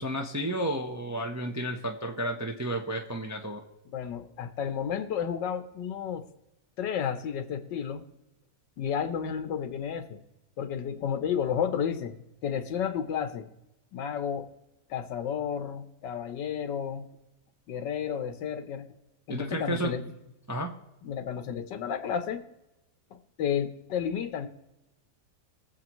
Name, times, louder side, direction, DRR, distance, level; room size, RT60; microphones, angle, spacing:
voice 1, 0.0-3.6 19.3-20.0 20.5-20.7, right 1 dB, 20° right, 1 dB, 0.5 m, -32 dB
voice 2, 3.9-6.2 6.8-8.0 8.8-10.2 10.6-13.5 13.9-14.5 14.9-17.1 17.7-18.9 19.3-20.0 21.0-22.4 23.1-24.5, left 8 dB, 90° left, 9 dB, 1.6 m, -32 dB
23.0 x 7.6 x 3.1 m, 0.95 s
omnidirectional pair, 1.9 m